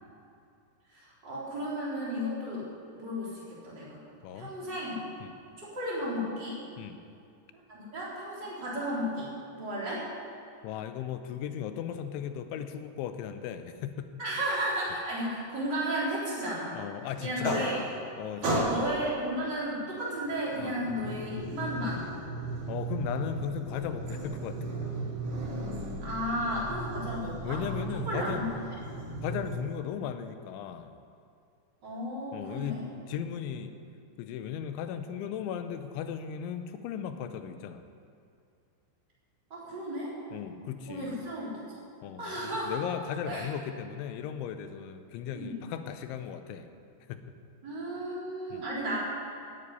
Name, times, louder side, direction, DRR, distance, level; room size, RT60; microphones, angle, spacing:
voice 1, 0.9-4.0 4.4-5.0 5.6-6.6 7.7-10.1 14.2-16.8 17.2-17.8 18.4-22.1 26.0-27.6 28.1-28.4 31.8-32.8 39.5-40.1 40.9-41.8 42.2-42.8 43.2-43.5 45.3-45.5 47.6-49.0, equal, 25° right, -7 dB, 4.3 m, -34 dB
voice 2, 4.2-4.5 5.2-5.3 6.8-7.0 10.6-14.1 16.7-17.6 18.2-18.7 20.6-20.8 22.7-24.7 26.6-26.7 27.4-28.5 29.2-30.9 32.3-33.7 34.2-37.8 40.3-41.2 42.0-46.7 47.1-47.2 48.5-48.6, left 9 dB, 90° left, 9 dB, 3.2 m, -36 dB
sound 1, 17.2-18.1 18.4-19.1 20.2-29.6, right 2 dB, 70° right, 4.9 m, -35 dB
14.5 x 8.6 x 9.6 m, 2.4 s
omnidirectional pair, 5.3 m